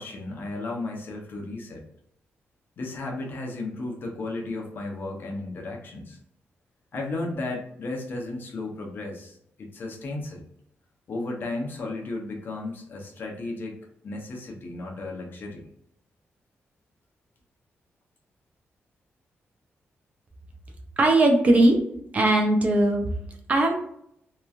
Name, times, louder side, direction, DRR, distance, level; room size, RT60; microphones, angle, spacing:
voice 1, 0.0-1.8 2.8-6.2 6.9-10.4 11.1-13.8 14.0-15.7, left 2 dB, 50° left, 0 dB, 0.7 m, -34 dB
voice 2, 21.0-21.8 22.1-23.1 23.5-23.7, right 2 dB, 30° right, 2 dB, 0.5 m, -19 dB
2.9 x 2.4 x 2.4 m, 0.72 s
wide cardioid pair, 175°, 5 cm